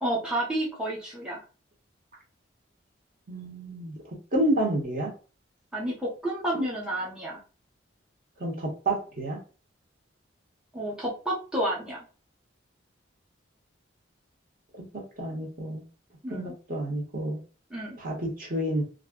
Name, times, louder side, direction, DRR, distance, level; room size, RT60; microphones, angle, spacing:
voice 1, 0.0-1.4 5.7-7.4 10.7-12.0 16.2-16.5 17.7-18.0, right 1 dB, 5° right, -3 dB, 0.6 m, -30 dB
voice 2, 3.3-3.9 4.3-5.1 8.4-9.4 14.9-15.8 16.3-17.4 18.0-18.8, right 1 dB, 45° right, 0 dB, 0.8 m, -29 dB
2.4 x 2.0 x 3.5 m, 0.36 s
head